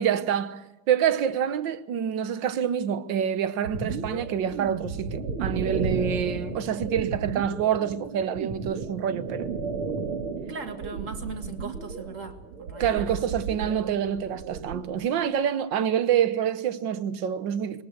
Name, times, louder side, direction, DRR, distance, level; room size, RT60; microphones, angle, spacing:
voice 1, 0.0-9.6 12.8-17.8, right 9 dB, 65° right, 1.6 m, -27 dB
sound 1, 3.6-14.8, right 4 dB, 85° right, 3.0 m, -33 dB
voice 2, 10.5-13.2, right 4 dB, 40° right, 2.0 m, -39 dB
22.0 x 19.0 x 8.1 m
omnidirectional pair, 2.3 m